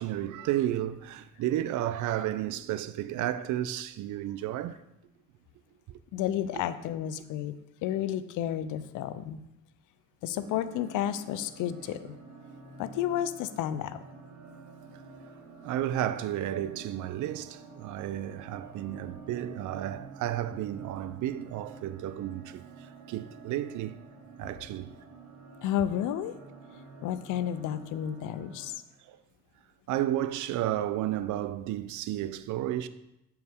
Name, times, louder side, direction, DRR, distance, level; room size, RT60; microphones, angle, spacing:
voice 1, 0.0-4.8 5.9-6.0 15.6-24.0 24.4-24.9 29.1-29.2 29.9-32.9, right 12 dB, 75° right, 0.5 m, -32 dB
voice 2, 6.1-7.5 7.8-9.4 10.2-12.2 12.8-14.0 25.6-26.3 27.0-28.8, left 11 dB, 90° left, 0.5 m, -31 dB
sound 1, 10.4-28.7, right 4 dB, 60° right, 1.5 m, -49 dB
7.5 x 4.6 x 3.5 m
cardioid pair, 90°, 30 cm